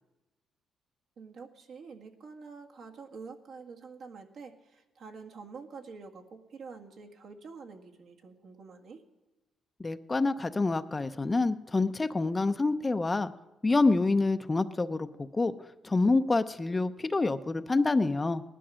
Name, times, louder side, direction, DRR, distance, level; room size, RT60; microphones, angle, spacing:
voice 1, 1.2-9.0, right 5 dB, 65° right, 2 dB, 1.9 m, -47 dB
voice 2, 9.8-13.3 13.6-15.1 15.3-15.5 15.8-18.4, left 3 dB, 25° left, 10 dB, 0.6 m, -27 dB
18.5 x 11.5 x 6.3 m, 1.1 s
cardioid pair, 90°, 0 cm